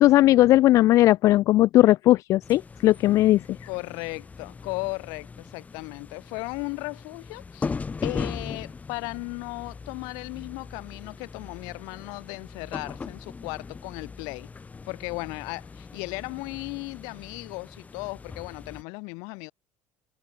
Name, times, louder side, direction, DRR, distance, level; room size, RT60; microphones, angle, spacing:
voice 1, 0.0-3.4, left 15 dB, 60° left, 0.6 m, -18 dB
sound 1, 2.4-18.8, left 4 dB, 25° left, 4.4 m, -39 dB
voice 2, 3.7-7.7 8.0-14.5 14.9-19.5, left 31 dB, 75° left, 2.3 m, -36 dB
supercardioid pair, 95°, 6 cm